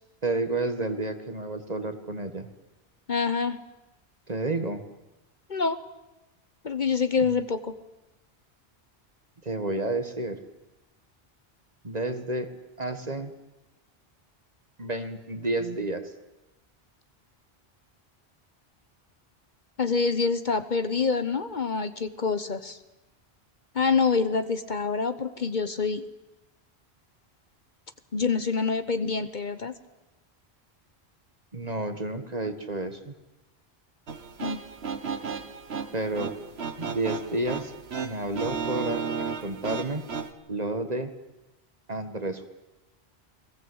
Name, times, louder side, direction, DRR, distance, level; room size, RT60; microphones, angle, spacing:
voice 1, 0.2-2.5 4.3-4.8 7.2-7.4 9.4-10.4 11.8-12.5 12.8-13.3 14.8-16.1 31.5-33.1 35.9-36.3 36.8-37.7 38.0-40.1 40.5-41.1 41.9-42.5, right 2 dB, 40° right, 8 dB, 1.9 m, -30 dB
voice 2, 3.1-3.6 5.5-5.8 6.6-7.7 19.8-22.8 23.7-26.0 28.1-29.7 34.4-34.6, left 5 dB, 50° left, 11 dB, 1.1 m, -26 dB
sound 1, 34.1-40.3, right 5 dB, 80° right, 1.7 m, -34 dB
29.5 x 21.0 x 8.0 m, 1.0 s
omnidirectional pair, 1.1 m